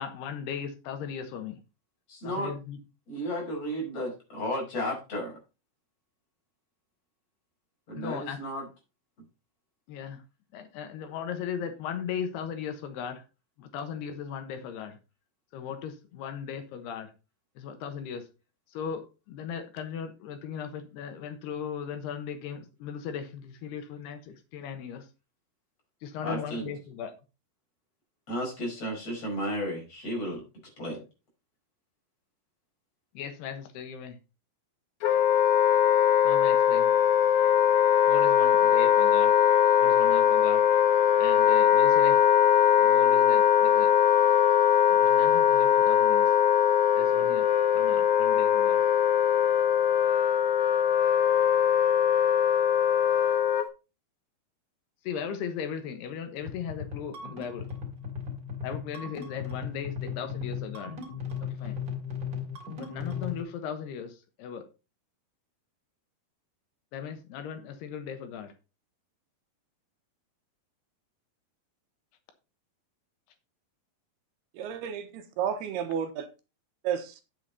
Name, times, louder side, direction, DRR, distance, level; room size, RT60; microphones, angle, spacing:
voice 1, 0.0-1.6 2.2-2.8 7.9-8.4 9.9-10.2 10.5-13.2 13.6-15.0 15.5-17.1 17.6-18.3 18.7-25.1 26.0-27.1 33.1-34.2 36.2-37.0 38.1-39.3 39.8-40.6 41.2-42.2 42.8-43.9 44.9-46.3 47.0-48.9 55.0-57.7 58.6-60.9 61.4-61.8 62.8-64.6 66.9-68.5, left 7 dB, 80° left, 3.2 m, -37 dB
voice 2, 2.1-2.5 3.1-5.4 7.9-8.7 26.2-26.8 28.3-30.4 30.8-31.0, equal, 35° left, 5.9 m, -33 dB
Wind instrument woodwind instrument, 35.0-53.7, left 9 dB, 65° left, 2.3 m, -21 dB
sound 1, 56.4-63.4, left 6 dB, 25° right, 2.4 m, -36 dB
voice 3, 74.6-76.3 76.8-77.1, right 8 dB, 80° right, 3.0 m, -32 dB
9.6 x 7.5 x 4.0 m
omnidirectional pair, 4.7 m